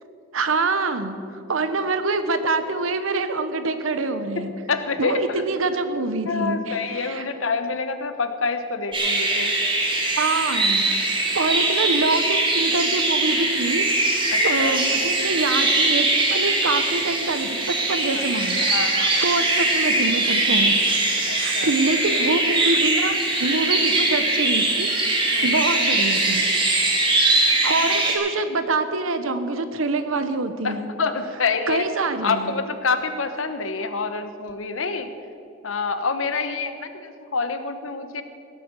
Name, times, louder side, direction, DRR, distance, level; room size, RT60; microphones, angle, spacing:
voice 1, 0.3-4.5 5.0-7.2 10.2-10.9 11.3-18.6 18.9-26.5 27.6-30.9 31.7-32.5, right 3 dB, 90° right, 9 dB, 1.0 m, -25 dB
voice 2, 4.4-5.2 6.3-9.6 14.3-14.8 18.1-18.2 18.7-19.2 21.2-21.7 25.3-25.6 27.8-28.0 30.6-31.8 32.2-35.1 35.6-38.2, left 4 dB, 85° left, 9 dB, 1.0 m, -27 dB
sound 1, 8.9-28.1, right 2 dB, 25° right, 2.2 m, -21 dB
17.0 x 8.6 x 6.7 m, 2.6 s
head